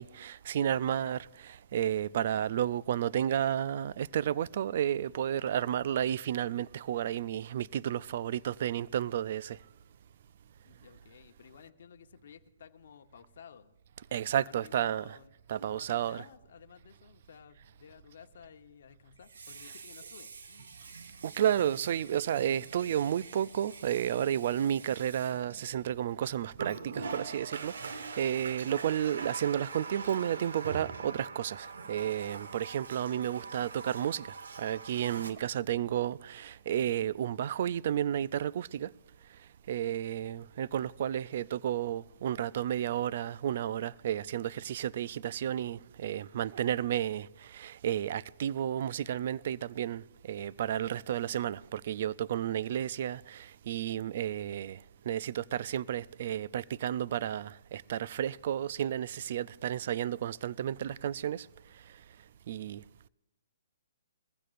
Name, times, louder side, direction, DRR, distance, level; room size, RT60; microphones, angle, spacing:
voice 1, 0.0-9.6 14.1-15.2 15.5-16.2 21.2-34.3 34.6-38.9 39.7-54.8 55.1-61.5 62.5-62.8, right 10 dB, 50° right, 0.3 m, -32 dB
voice 2, 10.6-13.7 14.1-15.3 15.7-20.8, left 7 dB, 60° left, 0.9 m, -55 dB
Water tap faucet, 15.6-15.7 19.2-26.0 26.5-35.3, right 4 dB, 80° right, 1.3 m, -44 dB
22.0 x 15.0 x 2.5 m
hypercardioid pair, 155°, 0 cm